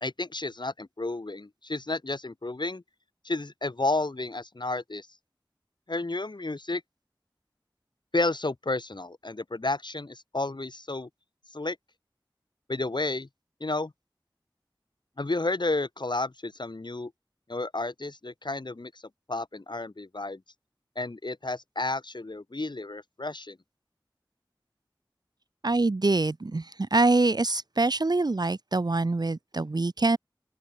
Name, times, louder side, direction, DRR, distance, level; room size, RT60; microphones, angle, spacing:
voice 1, 0.0-2.8 3.2-5.1 5.9-6.8 8.1-11.1 11.5-11.8 12.7-13.3 13.6-13.9 15.2-17.1 17.5-18.9 19.3-20.4 21.0-23.6, left 2 dB, 60° left, 1.0 m, -31 dB
voice 2, 25.6-26.6 26.9-30.2, right 3 dB, 50° right, 0.5 m, -24 dB
open air
wide cardioid pair, 40°, 9 cm